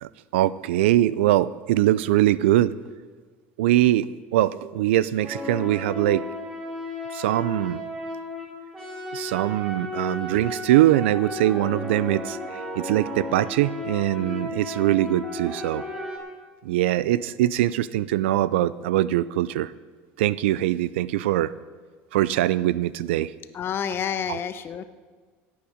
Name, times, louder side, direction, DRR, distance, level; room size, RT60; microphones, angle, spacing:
voice 1, 0.0-2.7 3.6-6.2 7.1-7.8 9.1-15.8 16.6-19.7 20.2-21.5 22.1-23.3 24.3-24.4, right 14 dB, 90° right, 18 dB, 0.4 m, -22 dB
sound 1, 5.2-16.2, left 1 dB, 10° right, 4.2 m, -34 dB
voice 2, 23.5-24.8, left 8 dB, 40° left, 11 dB, 0.8 m, -29 dB
16.0 x 8.7 x 5.0 m, 1.5 s
supercardioid pair, 105°, 6 cm